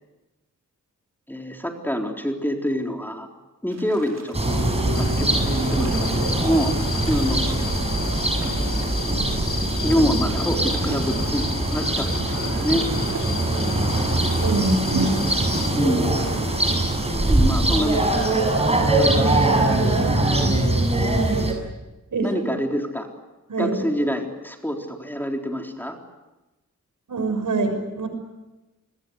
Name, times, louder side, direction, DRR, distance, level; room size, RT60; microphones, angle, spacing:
voice 1, 1.3-3.3 3.6-4.6 4.9-6.7 7.0-7.7 9.8-12.9 15.8-16.1 17.3-18.3 18.9-20.3 22.2-23.1 23.6-26.0, equal, 5° left, 2 dB, 3.9 m, -26 dB
sound 1, 3.7-16.6, right 4 dB, 55° right, 5.5 m, -38 dB
sound 2, 4.3-21.5, right 2 dB, 20° right, 6.9 m, -22 dB
sound 3, 4.9-15.7, left 4 dB, 80° left, 7.1 m, -34 dB
voice 2, 14.4-15.2 22.1-22.6 23.5-23.8 27.1-28.1, right 2 dB, 85° right, 6 dB, 6.6 m, -24 dB
28.5 x 21.5 x 8.3 m, 1.1 s
wide cardioid pair, 75°, 31 cm